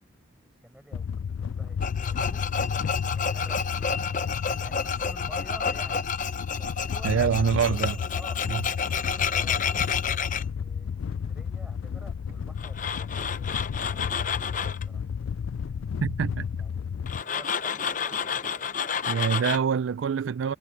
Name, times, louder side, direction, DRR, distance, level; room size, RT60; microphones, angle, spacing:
voice 1, 0.6-2.5 3.0-6.1 6.6-7.4 7.7-8.4 8.8-10.0 10.6-15.0 16.6-19.7, equal, 5° right, 6.1 m, -51 dB
sound 1, 0.9-17.2, left 7 dB, 80° left, 0.4 m, -32 dB
Tools, 1.8-10.4 12.6-14.8 17.1-19.6, left 6 dB, 40° left, 0.7 m, -30 dB
voice 2, 7.0-8.0 8.5-8.6 16.0-16.5 19.1-20.6, right 7 dB, 75° right, 0.4 m, -25 dB
head